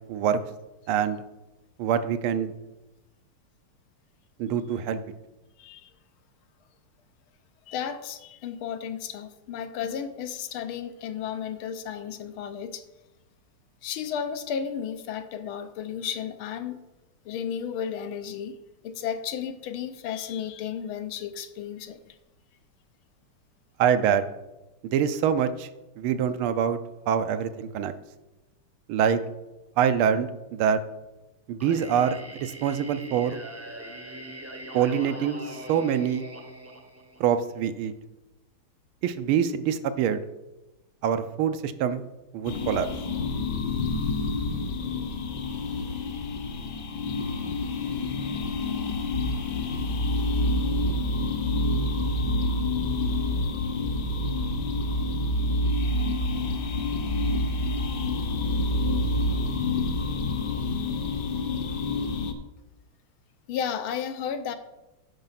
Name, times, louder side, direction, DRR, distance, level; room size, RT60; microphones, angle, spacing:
voice 1, 0.1-0.4 0.9-1.2 1.8-2.5 4.4-5.0 23.8-24.2 24.9-25.7 26.0-26.8 27.1-27.9 28.9-29.2 29.8-30.8 31.5-33.4 34.7-36.2 37.2-37.9 39.0-40.2 41.0-42.0 42.3-42.9, right 8 dB, 80° right, 11 dB, 1.5 m, -25 dB
voice 2, 5.6-5.9 7.7-12.8 13.8-16.8 17.2-18.6 18.8-22.2 63.5-64.6, left 8 dB, 80° left, 10 dB, 1.5 m, -33 dB
Singing, 31.6-37.5, right 1 dB, 15° right, 0.6 m, -42 dB
sound 1, 42.4-62.3, left 5 dB, 60° left, 1.4 m, -30 dB
sound 2, 49.1-60.7, right 2 dB, 30° left, 0.8 m, -29 dB
9.1 x 5.9 x 5.7 m, 0.99 s
omnidirectional pair, 2.4 m